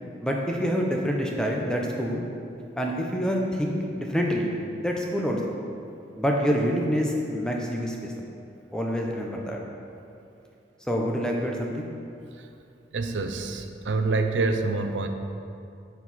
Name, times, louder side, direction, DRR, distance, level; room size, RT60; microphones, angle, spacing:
voice 1, 0.2-2.3 2.8-4.5 4.8-5.4 6.2-8.1 8.7-9.6 10.9-11.9, equal, 5° left, -1 dB, 0.7 m, -26 dB
voice 2, 12.9-15.1, right 3 dB, 90° right, 6 dB, 0.6 m, -26 dB
10.0 x 4.7 x 4.2 m, 2.5 s
head